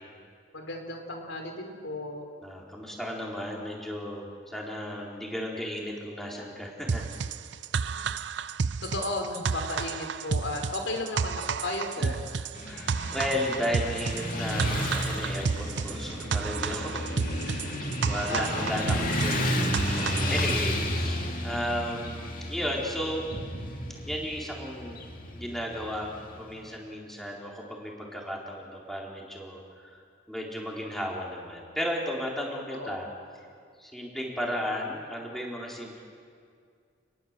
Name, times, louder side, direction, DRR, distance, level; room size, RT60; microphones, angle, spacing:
voice 1, 0.5-2.3 7.8-8.1 8.8-12.2 18.3-19.3 32.7-33.1, left 2 dB, 90° left, 3 dB, 4.0 m, -35 dB
voice 2, 2.4-7.1 12.0-17.0 17.4-23.2 24.1-25.0 25.3-29.9 30.3-33.1 33.8-36.0, equal, ahead, -3 dB, 4.1 m, -34 dB
sound 1, 6.9-20.6, right 5 dB, 65° right, 0.5 m, -31 dB
Motorcycle / Traffic noise roadway noise, 12.5-26.7, left 1 dB, 45° left, 2.6 m, -32 dB
29.5 x 21.5 x 7.5 m, 2.2 s
head